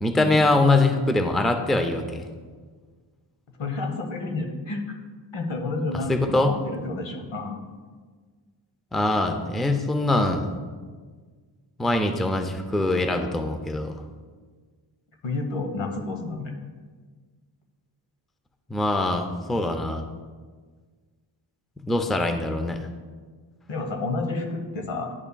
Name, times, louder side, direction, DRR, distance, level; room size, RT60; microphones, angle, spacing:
voice 1, 0.0-2.2 6.1-6.5 8.9-10.5 11.8-13.9 18.7-20.0 21.8-22.8, left 2 dB, ahead, 6 dB, 0.4 m, -23 dB
voice 2, 3.6-4.8 5.3-7.6 15.2-16.5 23.7-25.1, left 3 dB, 80° left, 3 dB, 1.2 m, -30 dB
10.5 x 5.6 x 2.2 m, 1.5 s
wide cardioid pair, 100°, 45 cm